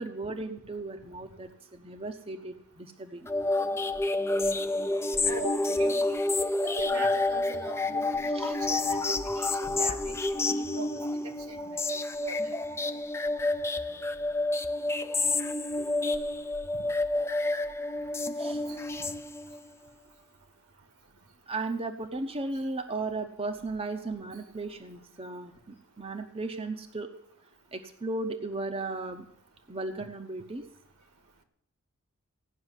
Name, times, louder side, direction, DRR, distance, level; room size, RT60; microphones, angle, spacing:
voice 1, 0.0-3.3 8.3-8.5 18.4-18.6 21.5-27.1 27.7-29.2 29.7-30.6, right 2 dB, 25° right, 5 dB, 0.9 m, -36 dB
sound 1, 3.3-19.7, left 2 dB, 10° left, 0.6 m, -29 dB
voice 2, 5.3-6.2 6.6-10.9 11.2-12.5 18.7-18.8 19.1-19.2, right 3 dB, 75° right, 7 dB, 1.9 m, -41 dB
16.0 x 6.2 x 9.9 m, 0.70 s
head